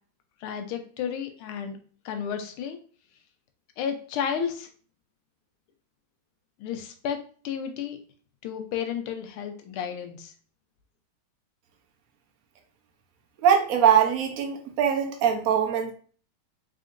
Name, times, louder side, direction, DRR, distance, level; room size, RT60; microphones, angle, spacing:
voice 1, 0.4-1.8 2.1-2.8 3.8-4.7 6.6-7.2 7.4-8.0 8.4-10.3, left 8 dB, 90° left, 6 dB, 1.6 m, -32 dB
voice 2, 13.4-15.9, right 8 dB, 60° right, 3 dB, 0.9 m, -22 dB
4.2 x 3.7 x 2.5 m, 0.42 s
omnidirectional pair, 2.3 m